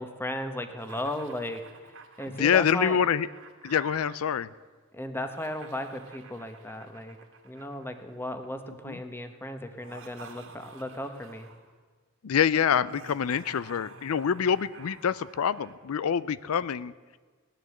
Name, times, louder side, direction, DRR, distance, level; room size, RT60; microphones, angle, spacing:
voice 1, 0.0-1.6 2.2-3.0 4.9-7.2 7.4-11.5, left 1 dB, 10° left, 7 dB, 1.1 m, -35 dB
Laughter, 0.8-4.2 5.1-8.5 9.7-11.7 12.8-15.8, right 4 dB, 65° right, 2.3 m, -50 dB
voice 2, 2.4-3.3 3.6-4.5 8.9-9.0 12.2-16.9, left 8 dB, 75° left, 18 dB, 0.4 m, -26 dB
17.5 x 10.5 x 7.8 m, 1.4 s
head